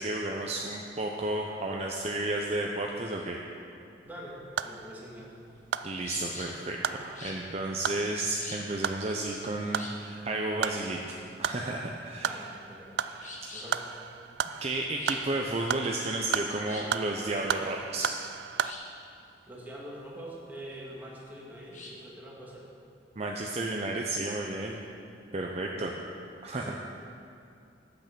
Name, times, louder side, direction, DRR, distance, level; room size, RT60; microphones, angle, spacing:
voice 1, 0.0-3.4 5.8-12.4 14.6-18.1 23.2-24.8 25.3-25.9 26.4-26.7, right 2 dB, 35° right, 0 dB, 0.6 m, -32 dB
voice 2, 4.0-4.3 4.6-5.3 12.2-12.9 13.5-13.8 19.4-22.7 26.6-26.7, equal, 10° right, -5 dB, 2.0 m, -44 dB
sound 1, 4.0-18.7, right 8 dB, 70° right, 0.3 m, -36 dB
sound 2, 5.2-22.1, left 2 dB, 45° left, 1.5 m, -48 dB
9.0 x 8.1 x 6.8 m, 2.5 s
head